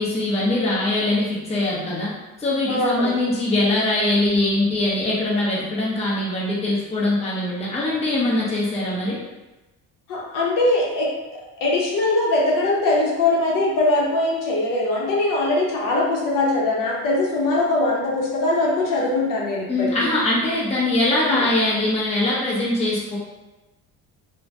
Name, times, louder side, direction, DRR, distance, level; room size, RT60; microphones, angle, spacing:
voice 1, 0.0-2.1 2.4-9.2 19.7-23.2, left 2 dB, 20° left, -6 dB, 0.6 m, -22 dB
voice 2, 2.7-3.1 10.1-11.1 11.6-20.1 21.3-21.5, left 2 dB, 65° left, -3 dB, 0.7 m, -21 dB
3.0 x 2.1 x 2.5 m, 1.1 s
cardioid pair, 135°, 35 cm